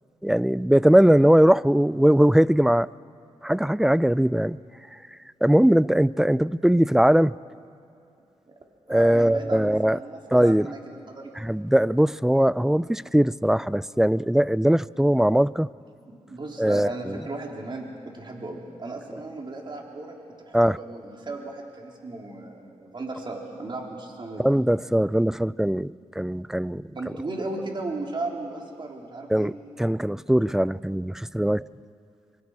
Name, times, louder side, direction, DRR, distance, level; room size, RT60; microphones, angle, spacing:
voice 1, 0.2-2.9 3.4-4.6 5.4-7.3 8.9-10.0 10.3-10.7 11.4-15.7 16.6-17.2 20.5-20.8 24.4-26.9 29.3-29.5 29.8-31.6, equal, 5° right, 20 dB, 0.4 m, -20 dB
voice 2, 8.9-11.3 16.1-24.4 27.0-29.5, right 2 dB, 40° right, 0 dB, 3.7 m, -36 dB
24.0 x 24.0 x 4.9 m, 2.6 s
cardioid pair, 55°, 12 cm